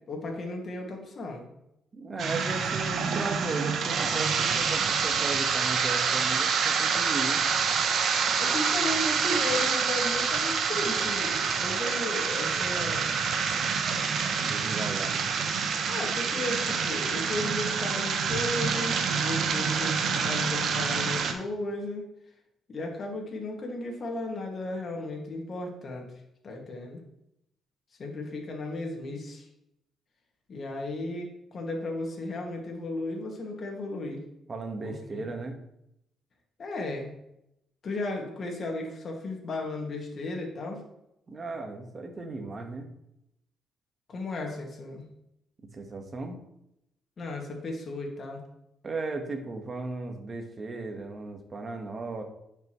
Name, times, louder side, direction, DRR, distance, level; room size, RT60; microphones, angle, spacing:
voice 1, 0.1-1.4 8.4-13.1 15.9-22.1 22.7-26.1 26.4-27.0 28.0-29.5 30.5-34.2 34.8-35.2 36.6-37.1 37.8-40.8 44.1-45.0 47.2-48.4, left 2 dB, 50° left, 1 dB, 2.2 m, -35 dB
voice 2, 1.9-7.4 14.4-15.3 34.5-35.6 41.3-42.9 45.7-46.4 48.8-52.2, right 3 dB, 35° right, 4 dB, 1.5 m, -36 dB
sound 1, 2.2-21.3, right 6 dB, 65° right, 0.9 m, -27 dB
10.0 x 5.8 x 3.2 m, 0.81 s
cardioid pair, 90°, 0 cm